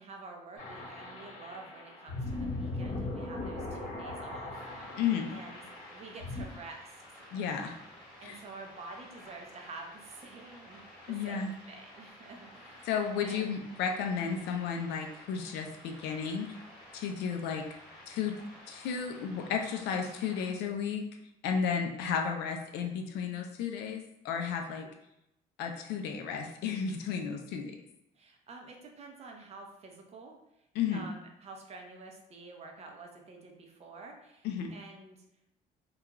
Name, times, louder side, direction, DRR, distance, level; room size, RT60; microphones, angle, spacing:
voice 1, 0.0-5.0 5.3-5.6 5.9-7.0 8.2-13.0 13.2-13.6 24.8-24.9 28.1-30.4 30.9-35.2, right 3 dB, 40° right, 2 dB, 0.5 m, -49 dB
sound 1, 0.6-6.4, left 2 dB, 45° left, 1.0 m, -39 dB
sound 2, 4.5-20.5, left 1 dB, 5° left, 1.2 m, -53 dB
voice 2, 5.0-5.3 7.3-7.7 8.2-8.4 11.1-11.5 12.9-16.5 16.9-17.7 18.1-18.3 18.7-21.0 21.4-24.9 25.6-27.7 30.8-31.1 34.4-34.7, left 6 dB, 85° left, 4 dB, 0.4 m, -33 dB
2.3 x 2.3 x 2.9 m, 0.84 s
cardioid pair, 110°, 17 cm